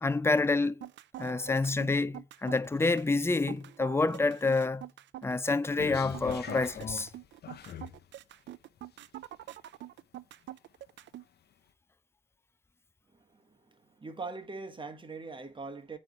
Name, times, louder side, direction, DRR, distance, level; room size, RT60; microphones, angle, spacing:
voice 1, 0.0-0.9 1.2-4.8 5.2-7.1, left 3 dB, 10° left, 0.5 m, -28 dB
sound 1, 0.6-11.2, right 13 dB, 65° right, 0.5 m, -45 dB
sound 2, 5.8-8.0 8.8-8.9, left 8 dB, 55° left, 0.8 m, -40 dB
voice 2, 13.1-16.0, right 3 dB, 25° right, 1.3 m, -42 dB
8.9 x 3.2 x 6.3 m
cardioid pair, 90°, 20 cm